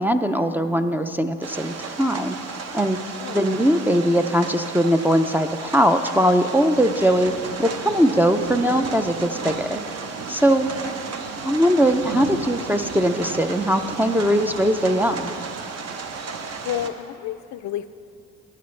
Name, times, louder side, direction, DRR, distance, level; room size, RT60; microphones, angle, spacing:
voice 1, 0.0-2.4 2.7-3.0 3.3-7.3 7.6-9.8 10.3-10.7 11.4-15.3, equal, 5° right, 5 dB, 0.4 m, -20 dB
sound 1, 1.4-16.9, right 5 dB, 55° right, 0.8 m, -33 dB
voice 2, 10.6-10.9 16.6-17.9, left 11 dB, 70° left, 12 dB, 0.5 m, -31 dB
15.0 x 9.4 x 3.2 m, 2.6 s
cardioid pair, 90°, 30 cm